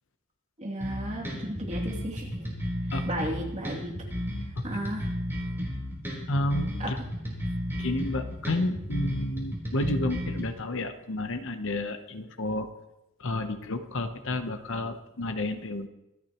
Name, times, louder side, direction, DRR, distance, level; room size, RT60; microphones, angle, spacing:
voice 1, 0.6-2.5 3.0-4.0 4.6-5.1 6.8-7.1, right 1 dB, 30° right, -2 dB, 2.7 m, -34 dB
sound 1, 0.8-10.4, equal, 10° right, 3.9 m, -33 dB
voice 2, 6.3-7.0 7.8-12.7 13.2-15.9, left 1 dB, 60° left, 8 dB, 0.9 m, -31 dB
25.0 x 9.5 x 3.0 m, 0.93 s
head